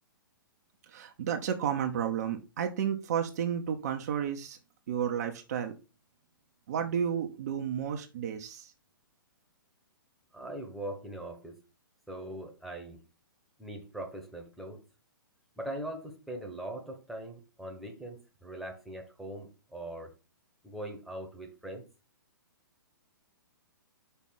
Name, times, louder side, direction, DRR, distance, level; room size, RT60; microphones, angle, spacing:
voice 1, 0.9-4.6 4.9-5.7 6.7-8.7, right 8 dB, 45° right, 5 dB, 0.9 m, -32 dB
voice 2, 10.3-11.6 12.1-13.0 13.6-14.8 15.6-20.1 20.6-21.8, right 1 dB, ahead, 2 dB, 1.3 m, -41 dB
5.6 x 4.1 x 5.6 m, 0.30 s
figure-of-eight pair, 120°, 12 cm